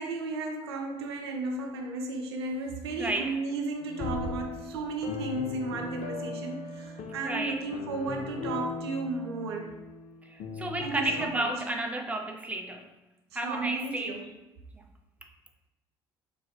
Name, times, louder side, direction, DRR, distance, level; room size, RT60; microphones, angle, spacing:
voice 1, 0.0-9.8 10.8-11.6 13.3-14.3, right 3 dB, 85° right, 3 dB, 0.4 m, -34 dB
voice 2, 3.0-3.3 7.2-7.6 10.6-12.9 13.3-14.2, right 2 dB, 10° right, 4 dB, 0.5 m, -31 dB
sound 1, 3.8-11.3, left 4 dB, 60° left, 0.4 m, -39 dB
sound 2, 4.0-5.6, left 2 dB, 15° left, 0.9 m, -40 dB
3.9 x 2.5 x 2.2 m, 1.0 s
hypercardioid pair, 55°, 13 cm